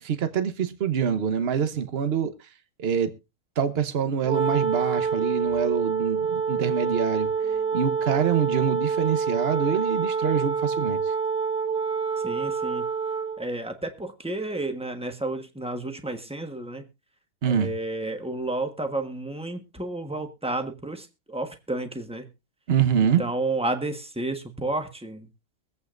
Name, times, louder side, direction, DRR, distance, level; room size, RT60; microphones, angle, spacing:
voice 1, 0.0-2.3 2.8-3.1 3.6-7.3 7.7-11.0 17.4-17.7 22.7-23.2, right 7 dB, 45° right, 1.1 m, -25 dB
Wind instrument woodwind instrument, 4.2-13.4, right 5 dB, 85° right, 1.8 m, -27 dB
voice 2, 12.2-12.8 13.4-16.8 17.5-22.3 23.2-25.3, right 2 dB, 5° right, 1.2 m, -31 dB
23.5 x 8.3 x 2.5 m
omnidirectional pair, 1.7 m